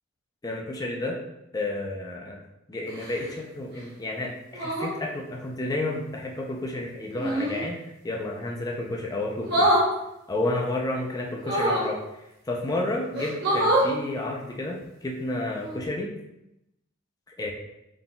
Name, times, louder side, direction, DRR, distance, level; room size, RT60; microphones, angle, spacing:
voice 1, 0.4-1.2 1.5-2.4 2.7-7.8 8.0-9.7 10.3-12.0 12.5-16.1 17.4-17.5, left 2 dB, 15° left, -1 dB, 0.4 m, -31 dB
sound 1, 2.9-3.3 4.5-5.0 7.2-7.6 9.4-9.9 11.4-11.9 12.7-12.8 13.1-13.9 15.5-15.8, right 1 dB, 50° right, 1.0 m, -24 dB
3.8 x 3.7 x 2.2 m, 0.87 s
head